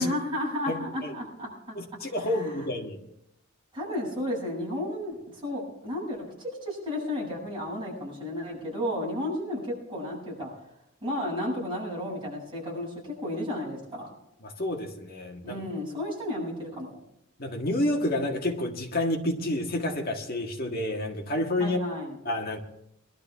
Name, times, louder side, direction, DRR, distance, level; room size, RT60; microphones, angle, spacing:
voice 1, 0.0-1.8 2.2-2.4 3.7-5.2 5.4-10.5 11.0-14.1 15.4-16.9 21.6-22.2, left 1 dB, 25° right, 7.6 m, -33 dB
voice 2, 0.7-1.1 1.8-3.0 14.4-15.6 17.4-21.8 22.3-22.6, left 1 dB, 45° left, 1.7 m, -29 dB
21.5 x 12.5 x 3.6 m
head